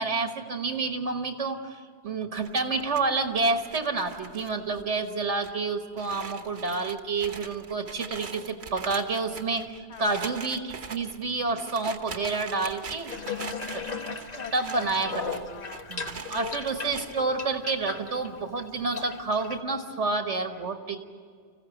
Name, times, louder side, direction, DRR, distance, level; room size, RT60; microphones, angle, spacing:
voice 1, 0.0-13.1 13.7-13.8 14.5-15.2 15.9-21.0, right 3 dB, 80° right, 5 dB, 1.7 m, -29 dB
Box of matches, 2.4-4.8 5.1-5.2 5.4-5.5 6.0-17.1, right 5 dB, 65° right, 1.4 m, -42 dB
voice 2, 9.9-10.2 14.1-15.8 16.3-16.8, left 8 dB, 75° left, 10 dB, 1.2 m, -43 dB
Water tap faucet / Bathtub (filling or washing), 13.1-19.6, left 4 dB, 35° left, 1.4 m, -37 dB
26.0 x 15.5 x 9.1 m, 2.1 s
omnidirectional pair, 1.2 m